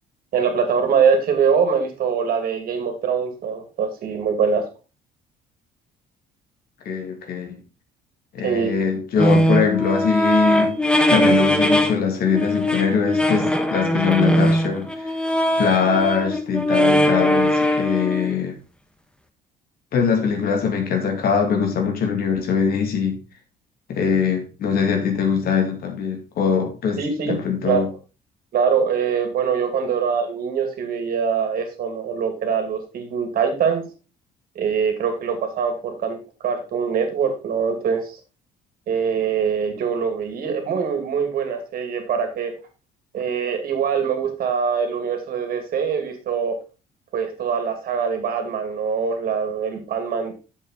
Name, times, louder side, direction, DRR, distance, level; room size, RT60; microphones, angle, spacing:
voice 1, 0.3-4.7 8.4-8.7 27.0-27.4 27.6-27.8 28.5-33.8 34.5-38.2 38.9-42.5 43.1-46.6 47.1-50.3, right 6 dB, 60° right, 2.5 m, -23 dB
voice 2, 6.8-7.6 8.3-10.8 11.1-15.1 15.6-18.6 19.9-23.2 23.9-27.0 27.3-27.9, left 6 dB, 65° left, 2.5 m, -22 dB
sound 1, 9.2-12.0 12.2-18.3, equal, 5° left, 1.2 m, -20 dB
8.1 x 7.2 x 4.0 m
cardioid pair, 110°, 17 cm